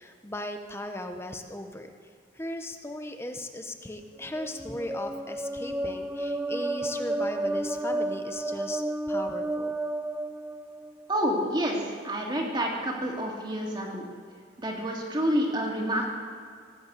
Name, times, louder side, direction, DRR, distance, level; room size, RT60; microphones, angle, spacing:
voice 1, 0.0-1.9 2.4-8.8 9.1-9.7, left 1 dB, 15° left, 6 dB, 1.0 m, -37 dB
sound 1, 4.2-11.1, right 1 dB, 10° right, 0.4 m, -32 dB
voice 2, 11.1-14.1 14.6-16.1, equal, 25° right, -1 dB, 2.6 m, -28 dB
18.0 x 7.9 x 8.2 m, 2.1 s
head